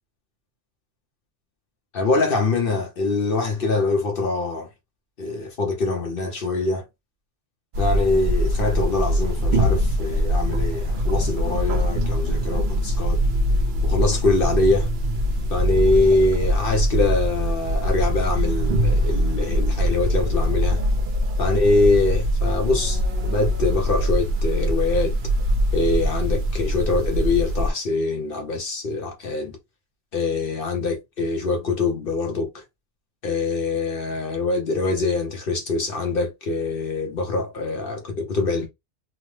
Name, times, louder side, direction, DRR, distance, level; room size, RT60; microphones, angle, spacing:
voice 1, 1.9-4.7 5.2-6.9 7.8-13.2 13.8-14.9 15.5-20.8 21.4-25.1 25.7-29.5 30.1-32.6 33.2-38.7, left 3 dB, 55° left, 0.7 m, -24 dB
sound 1, 7.7-27.7, equal, 55° right, 0.5 m, -22 dB
2.8 x 2.0 x 3.1 m
omnidirectional pair, 1.4 m